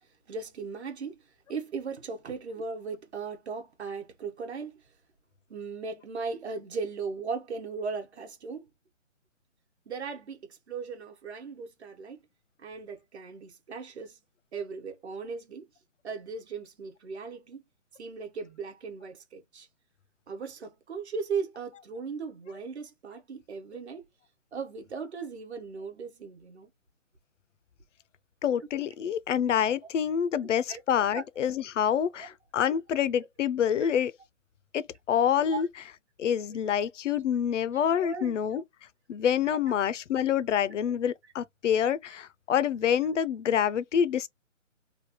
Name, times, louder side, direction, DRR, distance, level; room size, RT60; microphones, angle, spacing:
voice 1, 0.3-1.2 1.5-4.7 5.5-8.6 9.9-12.2 12.6-14.2 14.5-15.6 16.0-17.6 18.0-19.7 20.3-24.0 24.5-26.7 30.4-30.8 31.1-31.3 32.1-32.3 33.8-33.9 35.5-35.6 38.0-38.3, right 5 dB, 55° right, 1.0 m, -37 dB
voice 2, 28.4-34.1 34.7-35.7 36.2-38.6 39.1-44.3, left 8 dB, 65° left, 0.5 m, -27 dB
3.2 x 2.2 x 2.8 m
hypercardioid pair, 170°, 39 cm